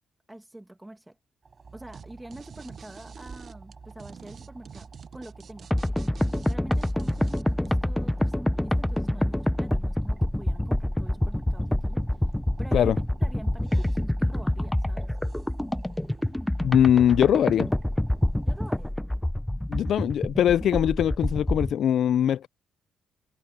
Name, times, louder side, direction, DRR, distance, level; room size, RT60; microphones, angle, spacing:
voice 1, 0.3-1.2 1.7-12.9 13.2-15.2 18.4-19.2, right 1 dB, 10° right, 1.3 m, -46 dB
sound 1, 1.4-18.9, right 4 dB, 35° right, 7.2 m, -48 dB
sound 2, 1.9-2.0 2.3-7.7, right 7 dB, 50° right, 0.8 m, -47 dB
sound 3, 5.7-21.7, left 1 dB, 5° left, 0.5 m, -27 dB
voice 2, 16.6-17.7 19.7-22.5, left 10 dB, 65° left, 0.3 m, -21 dB
cardioid pair, 90°, 0 cm